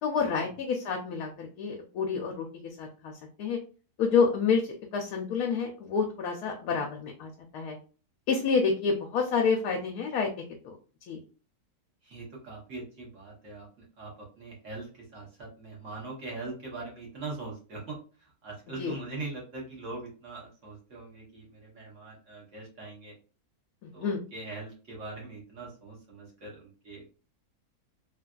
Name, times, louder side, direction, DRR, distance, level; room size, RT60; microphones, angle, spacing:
voice 1, 0.0-2.4 2.8-3.1 3.4-3.6 4.0-4.6 4.9-7.8 8.3-10.3 10.6-10.8 11.1-11.2 18.8-18.9 24.0-24.2, left 5 dB, 80° left, 1 dB, 1.1 m, -28 dB
voice 2, 12.0-14.9 15.1-23.1 23.9-27.1, right 3 dB, 55° right, -2 dB, 1.4 m, -42 dB
3.3 x 2.4 x 2.3 m, 0.37 s
omnidirectional pair, 1.6 m